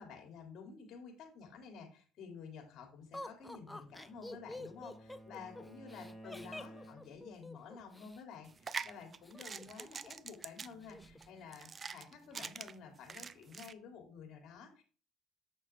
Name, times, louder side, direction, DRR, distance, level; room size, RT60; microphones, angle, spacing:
voice 1, 0.0-14.8, left 5 dB, 60° left, 2 dB, 3.0 m, -51 dB
Laughter, 3.1-8.2 9.2-10.1 10.4-10.5 10.8-11.3, left 1 dB, 10° left, 0.7 m, -48 dB
Bowed string instrument, 3.4-7.3, right 1 dB, 10° right, 2.5 m, -55 dB
sound 1, 8.4-13.7, right 5 dB, 35° right, 0.5 m, -45 dB
7.9 x 6.6 x 3.6 m, 0.38 s
supercardioid pair, 85°, 0 cm